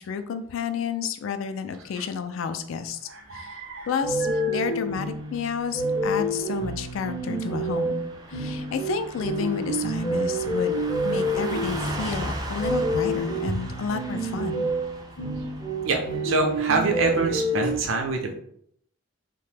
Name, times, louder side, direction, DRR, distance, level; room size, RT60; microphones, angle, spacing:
voice 1, 0.0-3.0 3.3-3.6 3.9-14.7, left 6 dB, 75° left, 10 dB, 0.3 m, -31 dB
voice 2, 3.1-3.9 4.2-4.5 13.5-13.6 15.8-18.4, right 3 dB, 75° right, 3 dB, 0.6 m, -26 dB
sound 1, 4.0-17.8, right 1 dB, 25° left, 0.6 m, -28 dB
Car passing by / Truck, 4.8-17.8, right 1 dB, 20° right, 0.3 m, -39 dB
2.8 x 2.2 x 3.2 m, 0.68 s
head